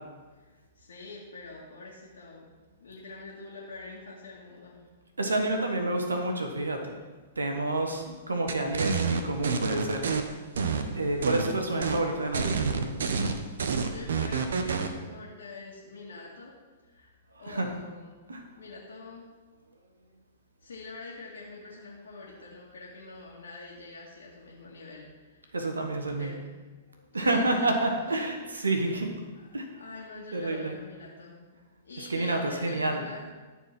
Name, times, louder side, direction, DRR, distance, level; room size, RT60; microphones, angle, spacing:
voice 1, 0.4-2.4 2.8-4.9 13.9-16.6 16.8-17.1 17.4-18.2 18.5-19.3 20.6-25.6 26.1-26.6 27.1-28.2 28.5-29.0 29.3-29.5 29.7-31.5 31.9-33.3, left 3 dB, 75° left, -5 dB, 2.0 m, -45 dB
voice 2, 5.2-7.0 7.4-10.3 10.9-13.0 17.3-17.7 18.3-18.4 25.5-26.4 27.1-29.1 29.5-29.7 29.9-30.0 30.3-30.7 32.0-33.1, right 2 dB, 85° right, 4 dB, 1.4 m, -29 dB
sound 1, 8.5-10.2 10.6-11.5 11.8-12.0 12.3-14.9, right 5 dB, 70° right, 0.9 m, -28 dB
13.5 x 4.6 x 5.9 m, 1.3 s
hypercardioid pair, 115°, 0 cm